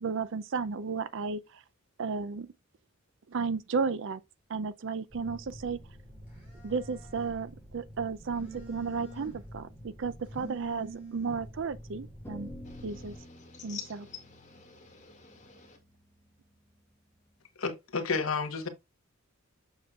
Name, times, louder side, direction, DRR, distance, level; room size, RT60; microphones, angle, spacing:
voice 1, 0.0-1.6 2.0-2.5 3.3-4.2 4.5-5.8 6.6-12.5 12.8-13.2 13.6-14.1, right 5 dB, 60° right, 0.5 m, -33 dB
Telephone, 5.1-13.2, right 1 dB, 5° right, 3.3 m, -46 dB
sound 1, 12.2-16.8, equal, 10° left, 1.0 m, -50 dB
voice 2, 12.6-13.0 13.4-15.8, left 7 dB, 35° left, 2.1 m, -47 dB
voice 3, 17.6-18.7, left 4 dB, 70° left, 1.2 m, -31 dB
7.2 x 6.2 x 2.4 m
head